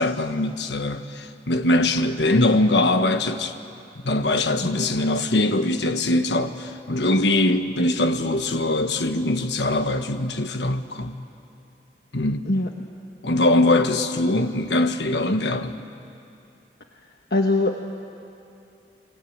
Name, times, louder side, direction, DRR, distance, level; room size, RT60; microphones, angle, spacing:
voice 1, 0.0-3.5 4.0-11.2 12.1-12.5 13.2-15.8, left 2 dB, 85° left, 8 dB, 1.4 m, -22 dB
voice 2, 17.3-17.8, left 2 dB, 65° left, 3 dB, 1.3 m, -22 dB
28.5 x 22.5 x 8.8 m, 2.6 s
head